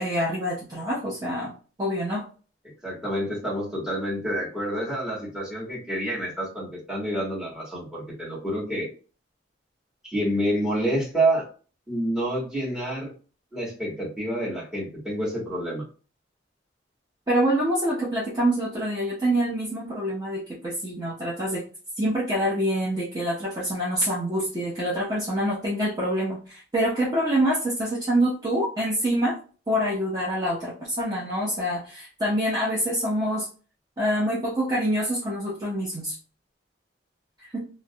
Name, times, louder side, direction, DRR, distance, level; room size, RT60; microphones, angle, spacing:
voice 1, 0.0-1.5 1.8-2.2 17.3-21.6 22.0-29.4 29.7-33.5 34.0-36.2 37.5-37.7, equal, 20° right, -6 dB, 0.6 m, -26 dB
voice 2, 2.8-8.9 10.0-11.5 11.9-13.1 13.5-15.9, right 1 dB, 5° right, -5 dB, 1.0 m, -28 dB
2.4 x 2.0 x 2.6 m, 0.37 s
head